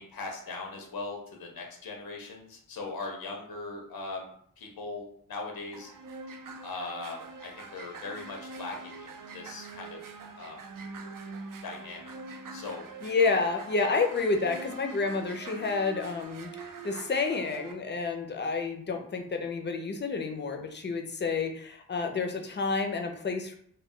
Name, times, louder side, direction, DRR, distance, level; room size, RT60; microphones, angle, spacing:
voice 1, 0.0-4.3 4.6-5.9 6.6-10.0 10.4-10.6 11.6-12.0 12.5-12.8, left 3 dB, 90° left, 1 dB, 0.6 m, -39 dB
sound 1, 5.7-17.7, right 3 dB, 65° right, 0.5 m, -44 dB
voice 2, 13.0-23.6, left 4 dB, 30° left, 4 dB, 0.4 m, -29 dB
2.2 x 2.2 x 3.6 m, 0.64 s
wide cardioid pair, 85°, 35 cm